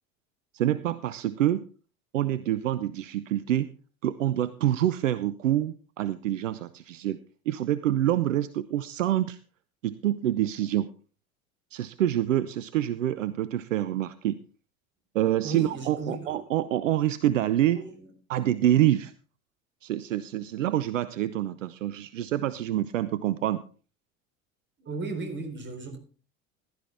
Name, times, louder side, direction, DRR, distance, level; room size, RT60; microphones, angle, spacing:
voice 1, 0.5-1.6 2.1-3.7 4.0-7.2 7.5-9.4 9.8-10.9 11.7-14.4 15.1-17.8 18.3-19.1 19.8-23.6, right 12 dB, 70° right, 15 dB, 0.7 m, -26 dB
voice 2, 15.4-16.4 17.6-18.1 24.8-26.0, right 3 dB, 25° right, 5 dB, 4.0 m, -36 dB
15.5 x 12.0 x 3.4 m, 0.38 s
figure-of-eight pair, 70°, 40 cm